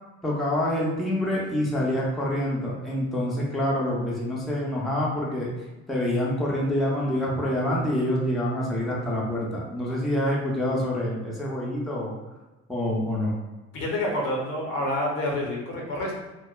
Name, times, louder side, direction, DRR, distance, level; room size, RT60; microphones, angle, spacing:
voice 1, 0.2-5.5 5.9-12.1 12.7-13.3, left 1 dB, ahead, -4 dB, 0.6 m, -26 dB
voice 2, 13.7-16.1, left 1 dB, 55° left, -1 dB, 0.8 m, -28 dB
3.2 x 2.1 x 2.3 m, 1.1 s
figure-of-eight pair, 50°, 39 cm